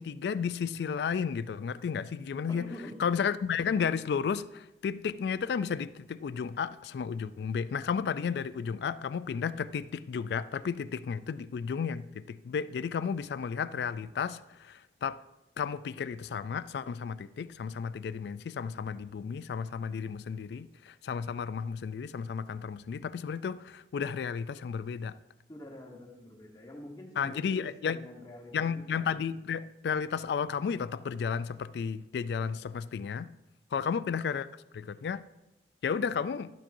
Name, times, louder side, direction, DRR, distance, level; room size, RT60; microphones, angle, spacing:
voice 1, 0.0-2.7 3.0-15.2 15.6-25.2 27.2-28.0 28.5-33.3 33.7-34.5 34.7-35.2 35.8-36.5, left 6 dB, 70° left, 0.3 m, -33 dB
voice 2, 2.5-2.9 25.5-28.6 28.9-29.0, left 1 dB, 20° left, 1.1 m, -46 dB
11.5 x 7.3 x 2.6 m
head